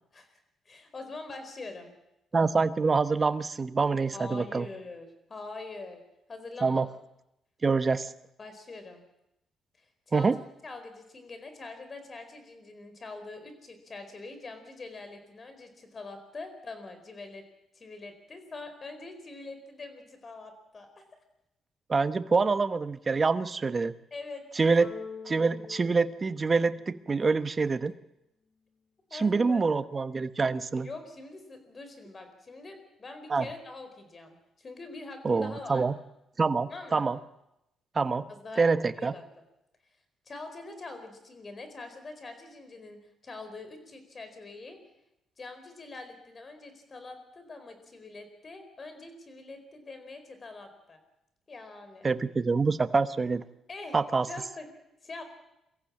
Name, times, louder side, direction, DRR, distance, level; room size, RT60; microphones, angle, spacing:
voice 1, 0.6-1.9 4.1-6.0 6.3-6.9 8.4-9.0 9.8-10.3 10.6-17.4 17.7-21.0 24.1-24.7 29.1-29.8 30.8-35.8 36.7-37.1 38.3-39.2 40.3-44.8 45.4-51.0 51.5-52.1 53.7-54.0 54.3-54.7 55.0-55.2, left 3 dB, 35° left, 8 dB, 4.5 m, -44 dB
voice 2, 2.3-4.7 6.6-6.9 7.6-8.1 10.1-10.4 21.9-23.9 24.5-24.9 25.2-27.9 29.1-30.9 33.3-33.5 35.2-35.9 36.4-37.2 37.9-38.3 38.6-39.1 52.0-53.4 53.9-54.3, right 4 dB, 30° right, 12 dB, 1.0 m, -26 dB
sound 1, 24.8-27.4, left 5 dB, 60° left, 3.2 m, -45 dB
23.0 x 15.0 x 8.6 m, 0.87 s
cardioid pair, 90°, 0 cm